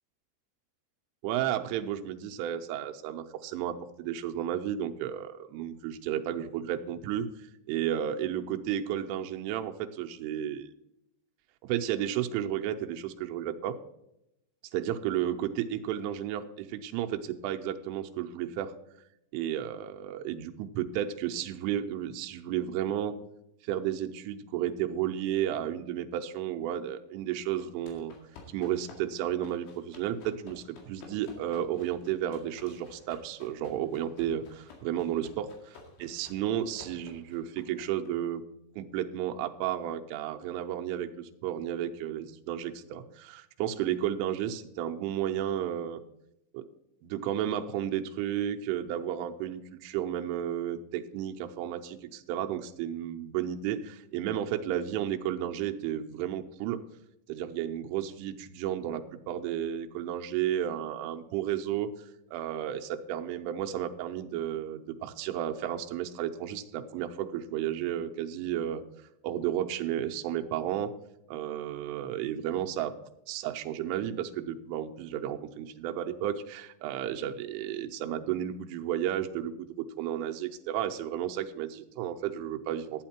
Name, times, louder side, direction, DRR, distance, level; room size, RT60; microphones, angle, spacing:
voice 1, 1.2-7.3 7.7-10.7 11.6-13.8 14.7-18.7 19.3-23.1 23.6-28.1 28.5-38.4 38.8-46.0 46.5-46.7 47.0-56.8 57.3-61.9 62.3-68.8 69.2-70.9 71.3-72.9 73.3-83.0, right 10 dB, 90° right, 5 dB, 3.3 m, -33 dB
sound 1, 27.6-38.1, left 4 dB, 80° left, 4.6 m, -53 dB
12.5 x 9.2 x 4.4 m, 0.83 s
omnidirectional pair, 5.5 m